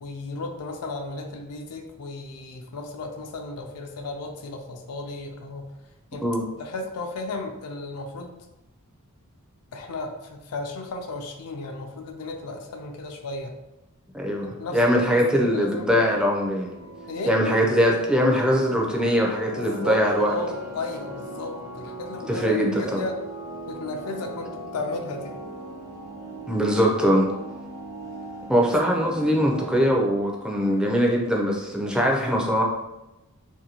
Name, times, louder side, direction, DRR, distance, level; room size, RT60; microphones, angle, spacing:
voice 1, 0.0-5.7 6.1-6.3 6.6-8.4 9.7-13.6 14.4-15.9 17.1-17.3 19.5-23.2 23.7-25.4 28.6-28.7, left 3 dB, 85° left, 4 dB, 0.5 m, -34 dB
voice 2, 14.1-16.7 17.3-20.3 22.3-23.0 26.5-27.3 28.5-32.6, equal, 5° right, -1 dB, 0.4 m, -22 dB
sound 1, 14.1-29.9, right 1 dB, 75° right, 0.9 m, -39 dB
2.6 x 2.6 x 2.8 m, 0.97 s
head